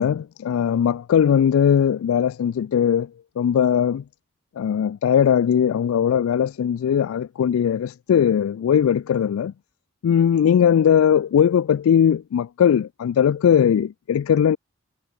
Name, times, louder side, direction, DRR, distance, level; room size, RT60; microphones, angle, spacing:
voice 1, 0.0-3.1 3.4-4.0 4.6-9.5 10.0-14.6, left 8 dB, 85° left, 0.3 m, -19 dB
head